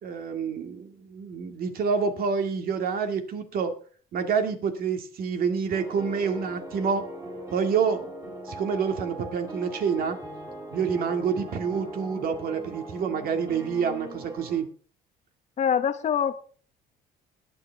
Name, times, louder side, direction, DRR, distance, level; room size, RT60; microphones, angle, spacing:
voice 1, 0.0-3.7 4.1-7.1 7.5-10.2 10.7-14.7, right 6 dB, 60° right, 6 dB, 2.1 m, -28 dB
sound 1, 5.7-14.6, right 1 dB, 15° right, 4.9 m, -40 dB
voice 2, 15.6-16.4, left 8 dB, 40° left, 8 dB, 0.9 m, -24 dB
21.5 x 8.0 x 3.5 m, 0.43 s
cardioid pair, 110°, 17 cm